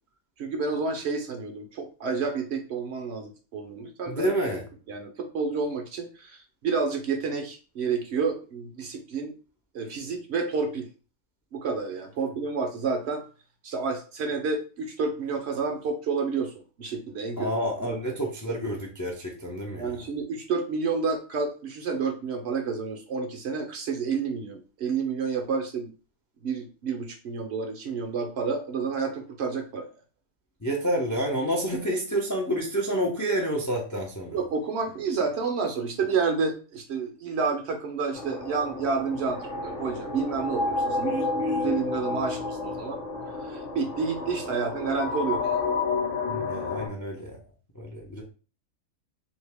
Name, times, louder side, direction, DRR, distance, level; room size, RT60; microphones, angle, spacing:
voice 1, 0.4-4.3 4.9-9.3 9.7-10.9 11.5-13.2 13.6-16.5 16.8-17.5 19.8-25.9 26.4-29.9 31.7-31.8 34.3-43.0 43.4-45.6, right 5 dB, 65° right, 4 dB, 0.7 m, -30 dB
voice 2, 4.1-4.6 17.4-20.0 30.6-34.4 46.3-47.4 47.7-48.2, right 1 dB, 30° left, 0 dB, 0.3 m, -29 dB
sound 1, 38.1-46.9, left 3 dB, 50° left, 1.0 m, -30 dB
2.8 x 2.6 x 3.3 m, 0.36 s
omnidirectional pair, 1.4 m